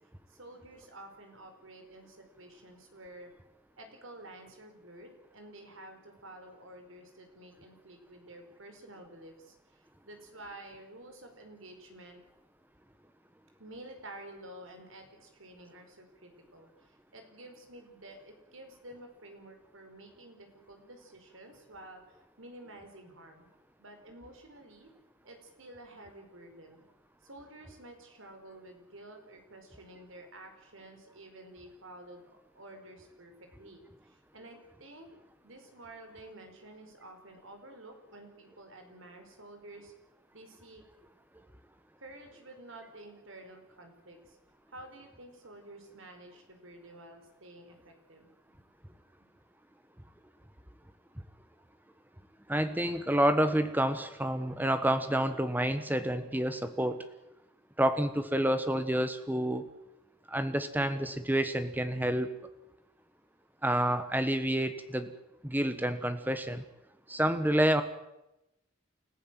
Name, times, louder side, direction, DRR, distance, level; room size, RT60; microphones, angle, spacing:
voice 1, 0.3-3.3 3.8-12.2 13.6-23.5 23.8-24.9 25.2-26.8 27.2-32.2 32.5-35.1 35.4-39.9 40.3-40.8 42.0-44.4 44.7-48.7 49.2-49.3, right 1 dB, 70° right, 5 dB, 4.9 m, -51 dB
voice 2, 52.5-57.1 57.8-59.7 60.3-62.4 63.6-65.1 65.4-66.6 67.1-67.8, right 1 dB, 10° right, 10 dB, 1.4 m, -29 dB
29.0 x 14.5 x 7.7 m, 0.92 s
head